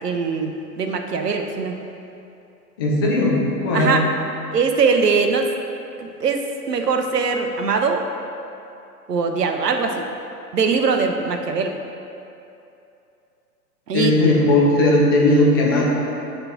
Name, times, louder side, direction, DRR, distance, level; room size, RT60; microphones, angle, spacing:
voice 1, 0.0-0.5 0.8-1.8 3.7-4.0 4.5-5.7 6.0-8.0 9.1-10.0 10.5-11.7 13.9-14.2, right 5 dB, 70° right, 5 dB, 0.7 m, -21 dB
voice 2, 2.8-3.9 13.9-15.8, left 1 dB, 15° left, -4 dB, 0.4 m, -17 dB
6.7 x 3.4 x 5.9 m, 2.7 s
figure-of-eight pair, 110°, 49 cm